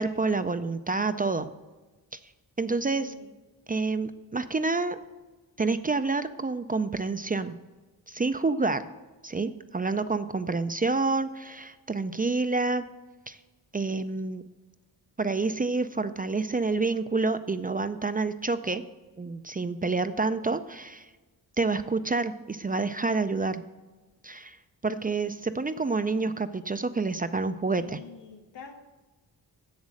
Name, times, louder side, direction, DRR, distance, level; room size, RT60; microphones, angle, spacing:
voice 1, 0.0-1.5 2.1-2.2 2.6-3.1 3.7-5.0 5.6-7.5 8.1-8.8 9.2-12.8 13.3-13.4 13.7-14.4 15.2-18.8 19.2-21.1 21.6-23.6 24.2-24.6 24.8-28.0, right 3 dB, 25° right, 11 dB, 0.3 m, -28 dB
voice 2, 2.9-3.4 27.8-28.8, left 6 dB, 90° left, 4 dB, 1.3 m, -47 dB
7.3 x 7.3 x 6.3 m, 1.2 s
wide cardioid pair, 85°, 41 cm